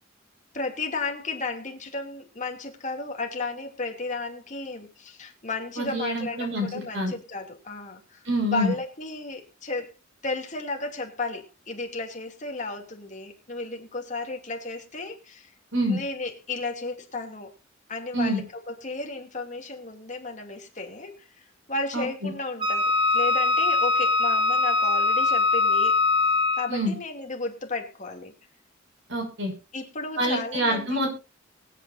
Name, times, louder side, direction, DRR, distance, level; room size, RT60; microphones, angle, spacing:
voice 1, 0.5-9.9 10.2-15.5 15.9-17.5 17.9-26.0 26.5-28.3 29.7-31.0, left 3 dB, 40° left, 2 dB, 2.6 m, -34 dB
voice 2, 5.8-7.1 8.3-8.7 15.7-16.0 18.1-18.4 21.9-22.3 26.7-26.9 29.1-29.5 30.2-31.1, equal, 65° right, 2 dB, 6.1 m, -26 dB
Wind instrument woodwind instrument, 22.6-26.8, left 4 dB, 25° right, 1.8 m, -22 dB
24.0 x 8.7 x 2.6 m, 0.29 s
head